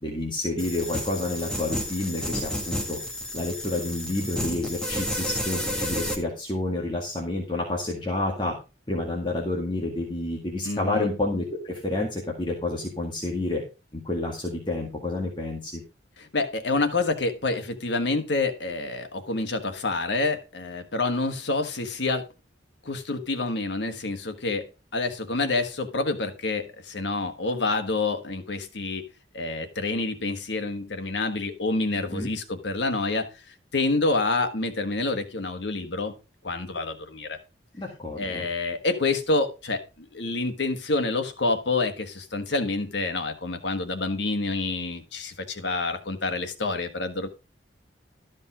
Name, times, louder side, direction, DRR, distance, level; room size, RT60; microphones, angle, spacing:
voice 1, 0.0-3.0 3.3-8.6 8.9-13.6 13.9-15.8 32.1-32.3 37.8-38.5, left 2 dB, 25° left, -1 dB, 1.9 m, -29 dB
sound 1, 0.6-6.1, equal, 5° left, 1.8 m, -31 dB
voice 2, 10.6-11.1 16.2-22.2 22.8-29.1 29.3-36.1 36.4-37.4 38.2-47.3, left 3 dB, 80° left, 7 dB, 1.5 m, -28 dB
13.0 x 5.4 x 4.9 m, 0.30 s
head